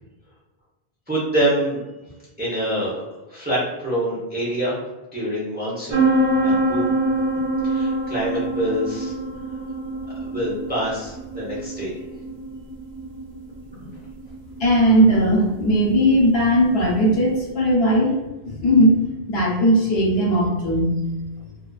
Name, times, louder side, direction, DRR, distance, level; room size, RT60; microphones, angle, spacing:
voice 1, 1.1-1.8 2.4-3.0 3.3-4.8 5.1-6.1 6.4-6.9 7.6-9.1 10.2-12.0 13.8-13.9, right 1 dB, 10° right, -7 dB, 0.6 m, -25 dB
sound 1, 5.9-17.4, right 1 dB, 70° right, 0.7 m, -26 dB
voice 2, 14.6-18.1 18.4-19.0 19.3-20.9, equal, 80° left, -4 dB, 1.0 m, -18 dB
2.4 x 2.3 x 2.3 m, 1.1 s
omnidirectional pair, 1.0 m